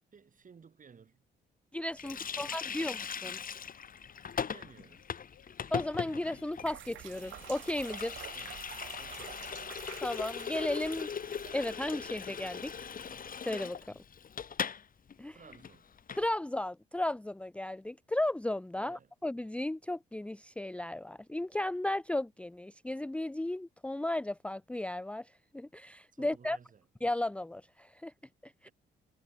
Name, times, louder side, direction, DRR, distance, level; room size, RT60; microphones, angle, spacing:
voice 1, 0.1-1.2 2.0-2.9 4.5-5.1 8.3-8.7 9.0-9.6 15.3-15.9 18.8-19.1 26.1-26.9 28.6-28.7, right 6 dB, 40° right, 5.2 m, -57 dB
voice 2, 1.7-3.4 5.7-8.2 10.0-11.1 11.5-12.9 13.4-13.8 15.2-15.3 16.2-26.6 27.0-28.1 28.4-28.7, left 1 dB, 5° left, 0.6 m, -35 dB
Water tap faucet, 2.0-14.8 15.1-15.2 15.5-16.2, left 7 dB, 45° left, 2.2 m, -40 dB
sound 1, 3.4-13.1, left 12 dB, 75° left, 4.3 m, -64 dB
sound 2, 6.4-13.3, right 13 dB, 75° right, 1.9 m, -49 dB
cardioid pair, 90°, 20 cm